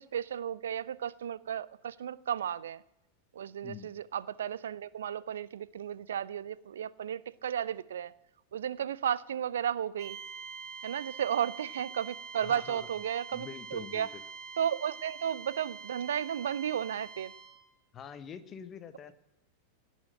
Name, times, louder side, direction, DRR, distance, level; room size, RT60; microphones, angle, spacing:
voice 1, 0.0-2.8 3.3-8.1 8.5-10.2 10.8-14.1 14.6-17.3, right 9 dB, 65° right, 0.4 m, -34 dB
sound 1, 10.0-17.7, right 5 dB, 30° right, 2.0 m, -45 dB
voice 2, 12.4-12.9 13.3-14.2 17.9-19.1, left 7 dB, 25° left, 1.2 m, -45 dB
17.0 x 6.3 x 8.9 m
figure-of-eight pair, 90°, 0 cm